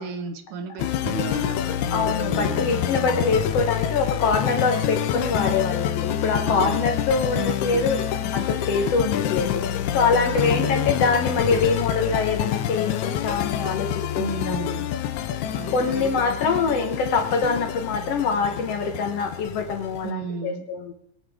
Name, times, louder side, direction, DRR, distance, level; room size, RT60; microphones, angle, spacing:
voice 1, 0.0-2.7 3.1-3.5 6.4-6.9 10.3-10.8 14.2-14.9 15.5-16.1 20.0-20.7, right 6 dB, 80° right, 7 dB, 2.7 m, -34 dB
sound 1, 0.8-20.1, left 10 dB, 80° left, 1.9 m, -27 dB
voice 2, 1.9-14.7 15.7-20.9, left 4 dB, 60° left, 4 dB, 1.9 m, -24 dB
22.5 x 9.0 x 3.6 m, 0.72 s
omnidirectional pair, 3.6 m